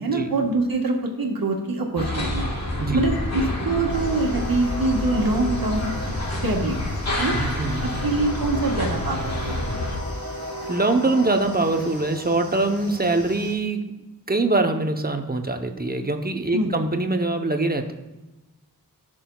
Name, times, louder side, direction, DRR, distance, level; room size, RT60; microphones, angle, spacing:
voice 1, 0.0-2.4 2.9-5.9 6.4-6.7 7.2-7.4 7.8-9.6 16.5-16.7, right 2 dB, 75° right, 0 dB, 1.5 m, -24 dB
sound 1, 2.0-10.0, left 1 dB, 50° left, 1.6 m, -28 dB
sound 2, 3.9-13.5, equal, 80° left, 3.2 m, -36 dB
voice 2, 7.3-7.9 10.7-13.9 14.3-17.9, right 2 dB, 25° right, 5 dB, 0.9 m, -23 dB
15.5 x 6.2 x 2.3 m, 1.1 s
wide cardioid pair, 70°, 35 cm